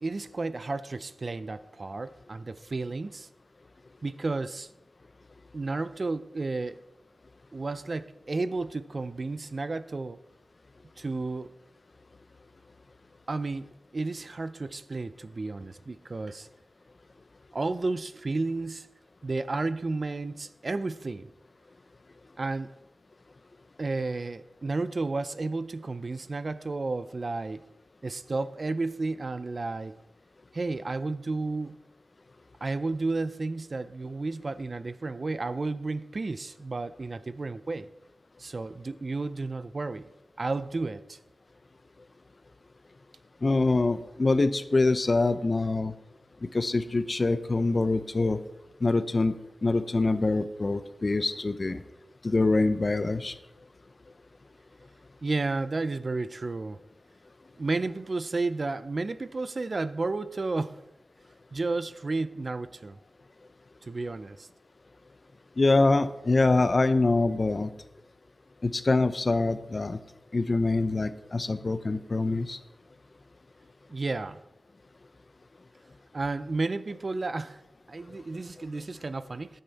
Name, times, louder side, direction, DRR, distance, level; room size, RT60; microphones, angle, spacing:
voice 1, 0.0-3.3 4.0-4.7 5.5-6.8 7.5-10.2 11.0-11.5 13.3-13.7 13.9-16.5 17.5-18.9 19.2-21.3 22.4-22.7 23.8-27.6 28.0-30.0 30.5-31.8 32.6-37.9 38.4-40.1 40.4-41.2 55.2-56.8 57.6-60.8 61.5-63.0 63.9-64.5 73.9-74.4 76.1-77.6 77.9-79.6, right 3 dB, 55° right, 0.4 m, -32 dB
voice 2, 43.4-45.9 46.5-48.4 48.8-49.3 49.6-51.8 52.2-53.3 65.6-67.7 68.6-70.0 70.3-72.6, left 3 dB, 50° left, 0.7 m, -25 dB
10.5 x 9.0 x 4.1 m
cardioid pair, 55°, 0 cm